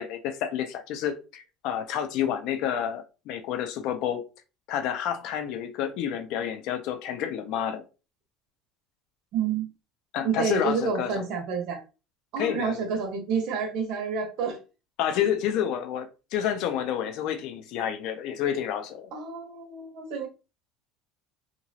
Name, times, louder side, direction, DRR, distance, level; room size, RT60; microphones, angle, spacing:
voice 1, 0.0-4.2 4.7-7.8 10.1-11.2 12.4-12.7 15.0-19.1, left 9 dB, 60° left, 0.5 m, -29 dB
voice 2, 9.3-9.7 10.2-11.8 12.3-14.6 19.1-20.3, right 5 dB, 60° right, 1.2 m, -29 dB
2.9 x 2.5 x 2.8 m
cardioid pair, 150°, 0 cm